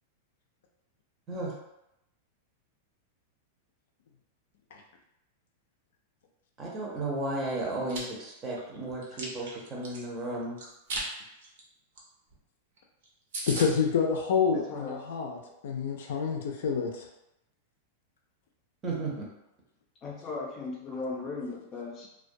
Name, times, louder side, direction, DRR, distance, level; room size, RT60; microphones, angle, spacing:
voice 1, 6.6-10.6 18.8-19.3, right 2 dB, 20° right, -3 dB, 0.6 m, -34 dB
Chewing mastication, 7.6-8.0 8.5-10.0 10.6-11.1 11.4-11.6 12.0-12.1 12.3-12.4 12.8-12.9 13.0-13.1 13.3-13.7, right 2 dB, 70° right, 0.7 m, -36 dB
voice 2, 13.5-15.4 15.6-17.1, left 6 dB, 75° left, 1 dB, 0.4 m, -28 dB
voice 3, 14.5-15.0 20.0-22.1, left 3 dB, 25° left, -2 dB, 0.5 m, -37 dB
2.2 x 2.2 x 2.6 m, 0.85 s
supercardioid pair, 155°, 0 cm